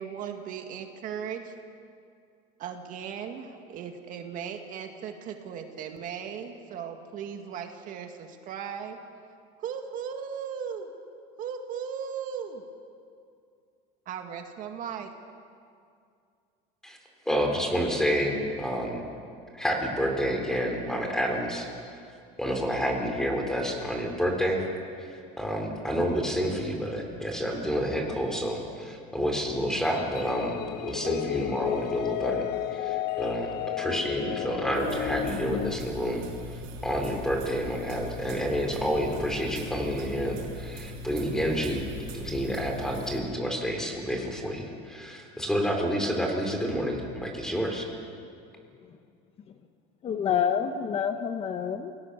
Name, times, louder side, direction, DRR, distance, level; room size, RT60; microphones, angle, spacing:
voice 1, 0.0-1.5 2.6-9.0 9.6-10.9 11.4-12.6 14.1-15.1, right 7 dB, 50° right, 5 dB, 2.1 m, -37 dB
voice 2, 17.3-19.1 19.6-21.7 22.4-24.7 25.0-36.3 36.5-41.8 42.1-47.9, equal, 5° left, 2 dB, 4.0 m, -29 dB
sound 1, 29.7-35.8, left 13 dB, 65° left, 1.1 m, -33 dB
sound 2, 34.7-43.2, equal, 80° right, 5.4 m, -40 dB
voice 3, 50.0-51.9, left 8 dB, 35° left, 7 dB, 1.1 m, -27 dB
28.0 x 18.0 x 6.9 m, 2.4 s
cardioid pair, 135°, 18 cm